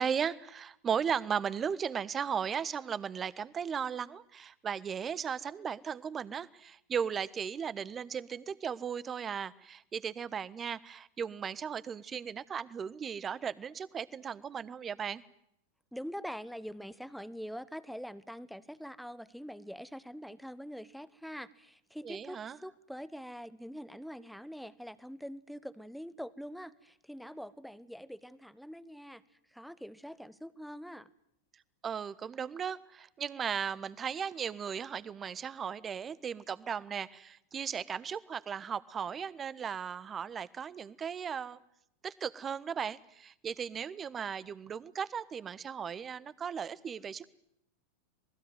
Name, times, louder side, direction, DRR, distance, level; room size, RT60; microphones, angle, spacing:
voice 1, 0.0-15.2 22.0-22.6 31.8-41.6 42.0-47.3, right 7 dB, 20° right, 19 dB, 1.2 m, -36 dB
voice 2, 15.9-29.2 29.5-31.1, equal, ahead, 16 dB, 1.2 m, -44 dB
26.5 x 20.0 x 9.4 m, 0.73 s
figure-of-eight pair, 90°, 0 cm